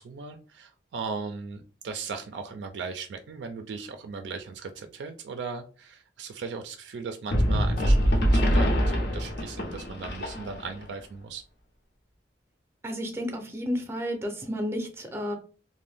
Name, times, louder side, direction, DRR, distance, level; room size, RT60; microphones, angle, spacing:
voice 1, 0.0-11.4, right 4 dB, 75° right, 7 dB, 0.3 m, -38 dB
sound 1, 7.3-10.8, equal, 65° left, 0.6 m, -24 dB
voice 2, 12.8-15.4, equal, 15° right, 5 dB, 0.5 m, -31 dB
2.5 x 2.1 x 3.4 m, 0.38 s
head